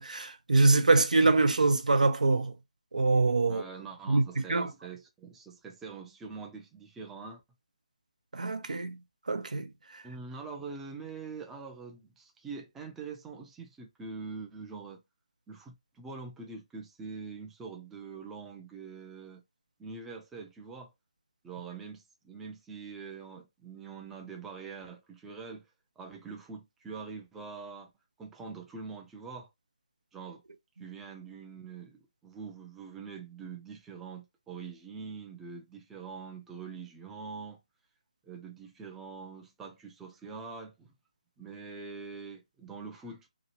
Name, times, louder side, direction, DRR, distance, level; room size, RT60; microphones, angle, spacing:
voice 1, 0.0-2.6 2.9-3.6 4.1-4.7 8.3-9.0 9.3-10.0, right 3 dB, 85° right, 0.7 m, -25 dB
voice 2, 3.5-7.4 10.0-15.0 15.5-19.4 19.8-20.9 21.4-25.7 26.0-27.9 28.2-29.5 30.1-30.4 30.8-37.6 38.2-41.0 41.4-43.3, right 5 dB, 5° right, 0.4 m, -44 dB
2.9 x 2.4 x 2.8 m
hypercardioid pair, 160°, 4 cm